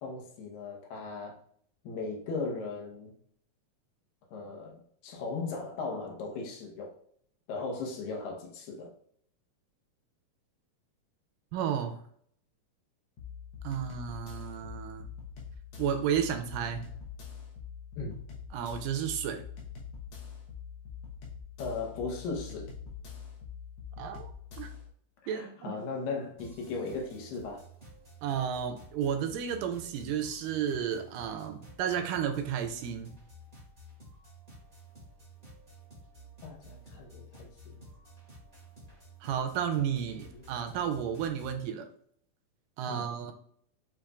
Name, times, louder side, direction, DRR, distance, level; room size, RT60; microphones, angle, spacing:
voice 1, 0.0-1.3 1.8-3.1 4.3-6.9 7.5-8.9 18.0-18.1 21.6-22.7 25.2-27.6 36.4-37.8 40.3-40.4 40.8-41.0 42.9-43.1, left 4 dB, 90° left, -1 dB, 2.6 m, -37 dB
voice 2, 11.5-12.0 13.6-15.1 15.8-16.8 18.5-19.4 24.0-24.3 24.6-24.7 25.3-25.8 28.2-33.1 39.2-41.9 42.8-43.3, right 8 dB, 80° right, 7 dB, 2.1 m, -32 dB
sound 1, 13.2-24.9, left 7 dB, 65° left, 1.8 m, -44 dB
sound 2, 26.4-41.6, right 1 dB, 65° right, 0.4 m, -52 dB
7.4 x 2.9 x 2.3 m, 0.63 s
omnidirectional pair, 3.9 m